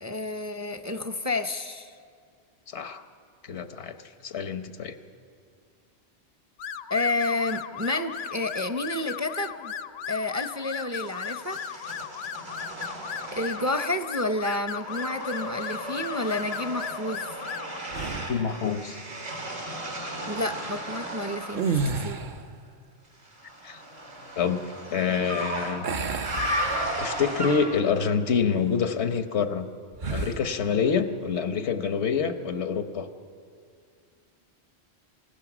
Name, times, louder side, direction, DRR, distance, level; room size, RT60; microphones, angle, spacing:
voice 1, 0.0-1.9 6.9-9.7 10.1-11.9 13.3-17.3 20.3-22.2, left 2 dB, 20° right, 8 dB, 0.6 m, -30 dB
voice 2, 2.7-3.0 3.4-4.0 4.2-5.0 18.3-19.0 23.6-23.8 24.4-24.6 24.9-25.9 27.0-29.7 30.1-33.1, left 6 dB, 90° left, 9 dB, 1.3 m, -26 dB
sound 1, 6.6-17.8, left 8 dB, 75° left, 0.9 m, -37 dB
sound 2, 11.0-14.1 14.4-21.7 23.2-27.9, right 1 dB, 70° right, 3.5 m, -35 dB
sound 3, 17.9-18.6 21.5-22.6 25.8-27.3 27.7-27.9 30.0-30.5, right 4 dB, 50° right, 0.9 m, -31 dB
28.0 x 16.0 x 6.0 m, 2.2 s
omnidirectional pair, 1.1 m